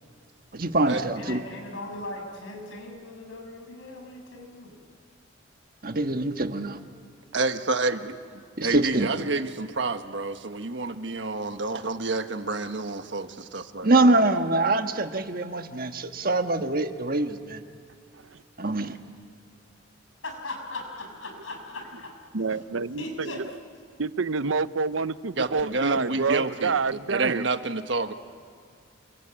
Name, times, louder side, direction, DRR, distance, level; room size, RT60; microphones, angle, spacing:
voice 1, 0.5-1.4 5.8-6.8 8.6-9.1 13.8-17.6 18.6-19.0, right 2 dB, 45° right, 7 dB, 1.4 m, -24 dB
voice 2, 1.1-4.8 20.2-22.1 22.5-22.6 23.0-23.4, left 1 dB, 85° left, 3 dB, 6.7 m, -38 dB
voice 3, 7.3-14.2 25.4-28.1, right 3 dB, 65° right, 8 dB, 1.4 m, -29 dB
voice 4, 22.3-23.4 24.0-27.4, right 4 dB, 90° right, 14 dB, 0.8 m, -27 dB
28.5 x 23.5 x 8.9 m, 2.2 s
head